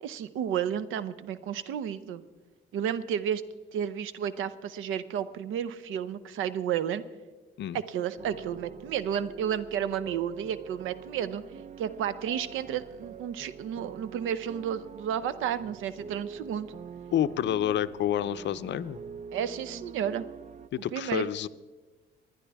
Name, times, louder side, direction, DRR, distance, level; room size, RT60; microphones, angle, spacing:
voice 1, 0.0-2.2 2.7-3.4 3.7-7.0 7.7-11.4 11.8-16.7 19.3-20.2 20.9-21.3, right 9 dB, 85° right, 15 dB, 0.7 m, -32 dB
sound 1, 8.2-20.7, right 7 dB, 35° right, 0.4 m, -45 dB
voice 2, 17.1-19.0 20.7-21.5, left 11 dB, 65° left, 15 dB, 0.5 m, -29 dB
19.5 x 11.0 x 3.5 m, 1.3 s
cardioid pair, 90°, 20 cm